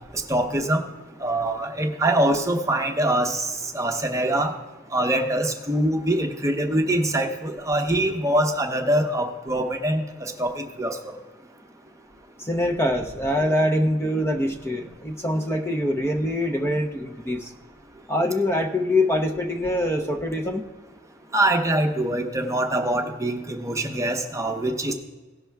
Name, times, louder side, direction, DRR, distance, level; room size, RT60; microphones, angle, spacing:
voice 1, 0.3-0.8 1.2-4.5 4.9-11.1 21.3-24.9, right 1 dB, 15° right, 4 dB, 0.9 m, -24 dB
voice 2, 12.4-17.5 18.1-20.6, left 1 dB, 15° left, 3 dB, 0.7 m, -24 dB
17.0 x 6.0 x 3.4 m, 1.2 s
head